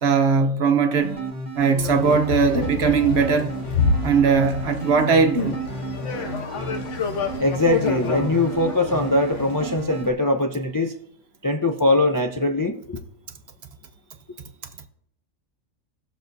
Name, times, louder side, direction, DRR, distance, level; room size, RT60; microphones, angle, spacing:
voice 1, 0.0-1.2 1.5-3.5 4.0-5.6, right 5 dB, 55° right, 1.0 m, -19 dB
sound 1, 1.0-10.1, right 3 dB, 35° right, 1.5 m, -33 dB
sound 2, 1.8-9.9, left 5 dB, 65° left, 1.3 m, -29 dB
voice 2, 6.0-6.3 7.4-10.9 11.4-13.0, left 2 dB, 30° left, 0.3 m, -22 dB
18.0 x 6.6 x 2.6 m
omnidirectional pair, 1.4 m